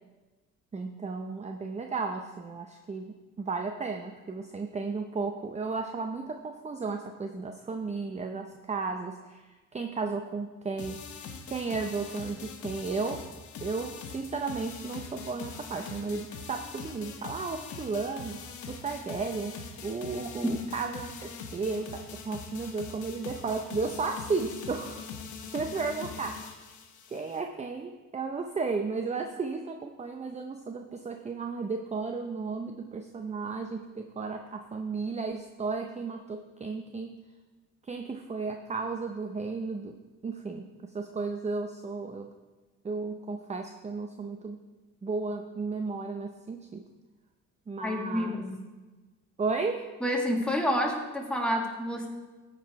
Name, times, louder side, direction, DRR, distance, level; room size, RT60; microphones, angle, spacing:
voice 1, 0.7-3.1 3.4-11.0 11.5-13.2 13.6-25.1 25.5-26.4 27.1-37.2 37.8-40.0 40.2-42.3 42.8-44.6 45.0-46.8 47.7-48.4 49.4-49.9, right 4 dB, 25° right, 4 dB, 0.6 m, -34 dB
sound 1, 10.8-27.4, left 5 dB, 75° left, 1.1 m, -42 dB
voice 2, 47.8-48.6 50.0-52.1, equal, 5° left, 0 dB, 1.7 m, -28 dB
13.5 x 4.8 x 4.7 m, 1.3 s
cardioid pair, 90°, 30 cm